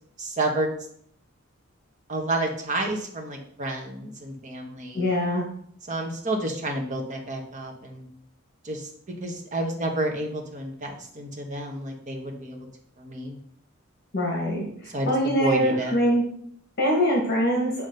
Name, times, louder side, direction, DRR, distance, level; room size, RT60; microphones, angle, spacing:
voice 1, 0.2-0.7 2.1-5.1 5.9-8.1 8.6-8.9 9.2-12.7 13.0-13.4 14.9-15.9, right 1 dB, 40° right, 0 dB, 1.3 m, -30 dB
voice 2, 4.9-5.4 14.1-14.7 15.1-16.2 16.8-17.7, equal, 50° left, -3 dB, 1.6 m, -23 dB
7.5 x 3.1 x 5.3 m, 0.66 s
head